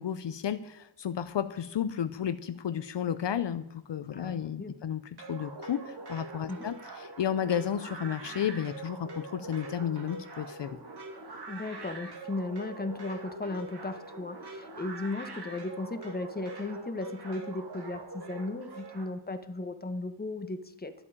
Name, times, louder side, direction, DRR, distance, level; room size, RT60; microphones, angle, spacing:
voice 1, 0.0-5.0 5.3-10.8, left 9 dB, 65° left, 12 dB, 0.7 m, -32 dB
voice 2, 4.1-4.8 6.5-6.7 11.5-20.9, left 2 dB, 20° left, 9 dB, 1.2 m, -36 dB
sound 1, 5.2-19.0, right 3 dB, 55° right, 2.5 m, -43 dB
11.5 x 8.5 x 8.8 m, 0.89 s
wide cardioid pair, 105°, 46 cm